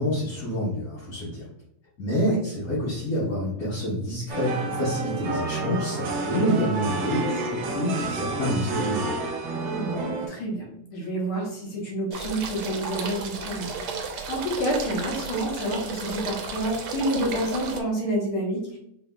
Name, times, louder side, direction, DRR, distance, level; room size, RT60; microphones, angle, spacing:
voice 1, 0.0-1.4 2.0-9.2, equal, 50° left, -8 dB, 1.3 m, -27 dB
sound 1, 4.3-10.3, right 3 dB, 65° right, 1.2 m, -29 dB
voice 2, 9.7-10.7 10.9-18.8, equal, 75° left, -1 dB, 2.0 m, -29 dB
sound 2, 12.1-17.8, right 4 dB, 85° right, 1.6 m, -33 dB
4.5 x 3.4 x 2.2 m, 0.74 s
omnidirectional pair, 2.4 m